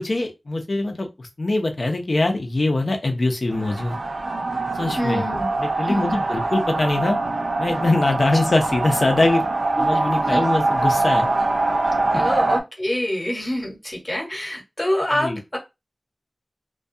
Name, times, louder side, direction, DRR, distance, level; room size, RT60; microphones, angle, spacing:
voice 1, 0.0-4.0 4.7-5.2 5.6-7.2 7.6-9.4 9.8-11.3 15.1-15.4, left 2 dB, 65° left, 4 dB, 0.5 m, -22 dB
sound 1, 3.5-12.6, right 2 dB, 85° right, 0.3 m, -23 dB
voice 2, 4.9-5.6 5.8-6.3 9.8-9.9 10.2-10.5 12.1-15.6, left 1 dB, 35° left, 0 dB, 1.0 m, -26 dB
2.2 x 2.2 x 2.6 m, 0.24 s
wide cardioid pair, 55°, 0 cm